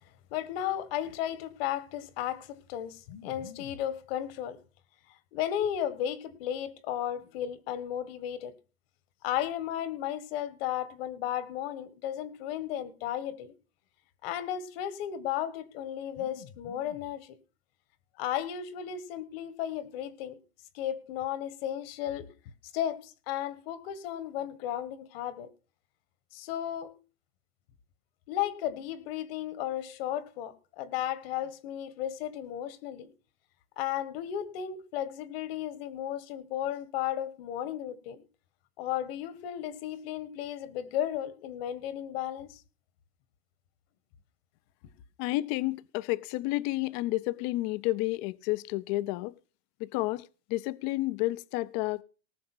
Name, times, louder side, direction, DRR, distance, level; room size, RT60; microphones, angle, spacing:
voice 1, 0.3-4.6 5.3-8.5 9.2-13.5 14.2-17.4 18.2-20.4 20.7-22.3 22.7-25.5 26.3-26.9 28.3-33.1 33.8-38.2 38.8-42.6, left 11 dB, 65° left, 1.7 m, -34 dB
voice 2, 45.2-49.3 49.8-52.0, left 19 dB, 45° left, 0.6 m, -31 dB
18.5 x 6.4 x 6.1 m
supercardioid pair, 150°, 32 cm